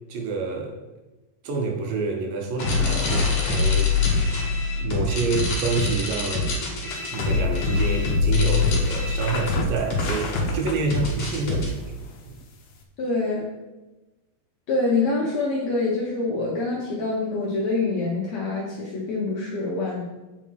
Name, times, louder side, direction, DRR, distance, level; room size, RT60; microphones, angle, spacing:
voice 1, 0.1-0.8 1.4-4.0 4.8-6.5 7.1-12.0 12.2-12.4, right 4 dB, 75° right, 2 dB, 2.5 m, -28 dB
sound 1, 2.6-11.7, left 4 dB, 50° left, 2.3 m, -24 dB
sound 2, 6.9-12.8, left 3 dB, 85° left, 1.4 m, -37 dB
voice 2, 13.0-13.5 14.7-20.0, left 3 dB, 70° left, -3 dB, 1.7 m, -25 dB
8.1 x 5.1 x 4.7 m, 1.1 s
omnidirectional pair, 4.3 m